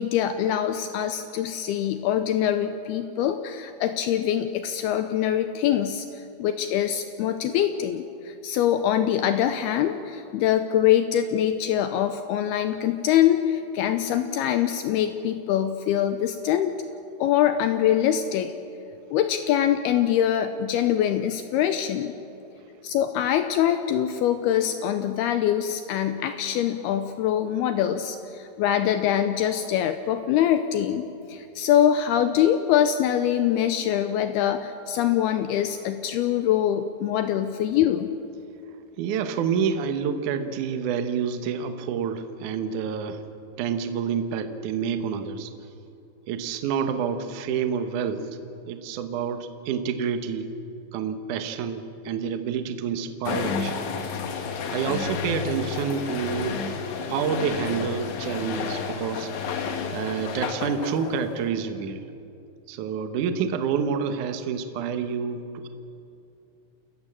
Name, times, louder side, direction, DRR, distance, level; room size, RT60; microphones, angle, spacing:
voice 1, 0.0-6.1 6.4-16.7 17.2-18.5 19.1-22.1 22.8-38.1, left 10 dB, 85° left, 9 dB, 2.3 m, -24 dB
voice 2, 39.0-43.2 43.6-45.5 46.3-48.3 48.7-50.5 50.9-53.8 54.7-56.6 57.1-62.0 62.7-65.7, right 7 dB, 75° right, 8 dB, 1.8 m, -28 dB
sound 1, 53.2-61.5, left 6 dB, 65° left, 2.0 m, -31 dB
29.0 x 14.0 x 7.5 m, 2.7 s
omnidirectional pair, 5.3 m